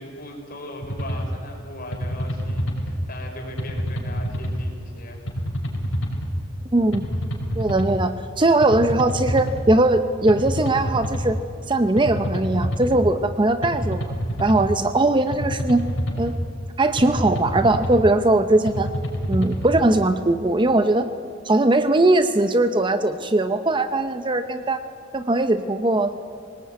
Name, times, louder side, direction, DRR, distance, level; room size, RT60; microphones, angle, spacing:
voice 1, 0.0-5.3, left 1 dB, 45° left, 1 dB, 5.6 m, -38 dB
sound 1, 0.8-1.3 1.9-2.9 3.6-4.6 5.3-6.3 6.9-8.0 8.6-9.6 10.3-11.3 12.0-13.0 13.6-14.7 15.3-16.3 17.0-18.0 18.7-19.7, equal, 85° left, 5.0 m, -27 dB
voice 2, 6.7-7.0 7.6-11.4 11.7-14.1 14.4-15.8 16.2-16.3 16.8-18.9 19.3-21.1 21.4-24.8 25.1-26.2, right 2 dB, 25° right, 9 dB, 0.8 m, -20 dB
24.0 x 19.0 x 9.5 m, 2.3 s
head